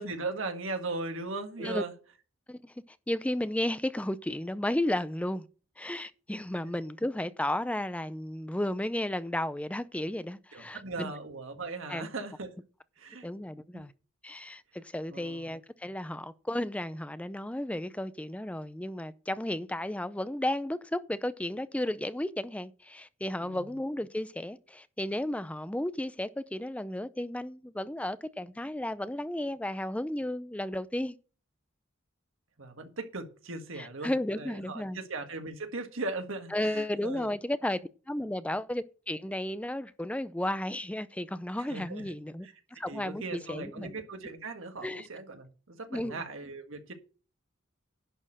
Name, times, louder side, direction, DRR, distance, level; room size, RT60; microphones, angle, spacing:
voice 1, 0.0-1.9 6.6-6.7 10.5-12.6 13.0-13.3 13.7-13.8 15.1-15.5 23.4-23.7 32.6-37.3 41.7-42.0 42.4-42.5 42.9-46.9, right 3 dB, 85° right, 1.7 m, -38 dB
voice 2, 3.1-5.5 5.8-11.1 11.9-12.1 13.2-13.9 14.2-31.2 33.8-35.0 36.5-37.8 38.1-44.0 44.8-45.1 45.9-46.3, left 1 dB, 5° left, 0.4 m, -33 dB
11.0 x 4.4 x 7.4 m
head